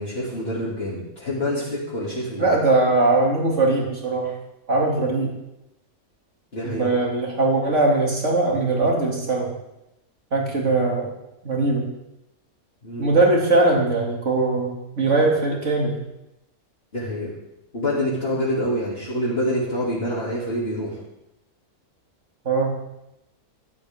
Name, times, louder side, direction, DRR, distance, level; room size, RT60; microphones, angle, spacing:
voice 1, 0.0-2.5 4.9-5.1 6.5-6.9 12.8-13.1 16.9-17.3 17.7-21.0, equal, 45° left, -7 dB, 3.0 m, -26 dB
voice 2, 2.4-4.3 4.7-5.3 6.6-9.5 10.3-11.1 11.4-11.8 13.0-16.0 22.4-22.8, right 2 dB, 55° right, -2 dB, 3.0 m, -20 dB
15.5 x 11.5 x 3.7 m, 0.90 s
omnidirectional pair, 1.5 m